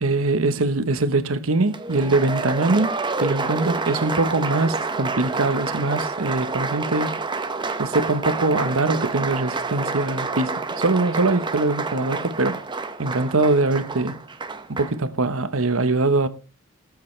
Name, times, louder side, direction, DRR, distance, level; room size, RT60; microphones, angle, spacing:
voice 1, 0.0-2.9 3.2-7.2 7.8-12.6 13.0-14.2 14.7-16.3, right 3 dB, 70° right, 1.0 m, -22 dB
Applause, 1.7-15.0, right 3 dB, 20° right, 0.7 m, -28 dB
17.5 x 8.4 x 3.3 m
head